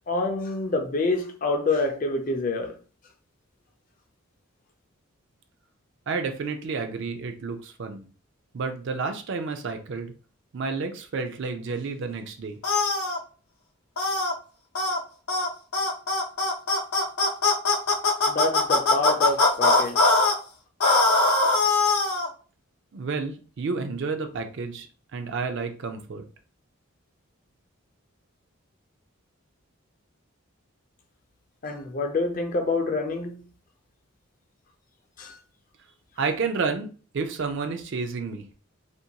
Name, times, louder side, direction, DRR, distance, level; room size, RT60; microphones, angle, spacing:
voice 1, 0.1-2.8 18.3-20.1 31.6-33.4 35.2-35.4, left 2 dB, 40° left, 0.4 m, -27 dB
voice 2, 6.1-8.1 8.5-10.1 10.5-12.6 22.9-24.9 25.1-26.2 36.2-36.9 37.1-38.5, right 4 dB, 55° right, 0.4 m, -30 dB
sound 1, 12.6-13.2 14.0-14.3 14.7-15.0 15.3-15.5 15.7-20.3 20.8-22.3, left 3 dB, 90° left, 0.6 m, -21 dB
2.5 x 2.2 x 2.7 m
head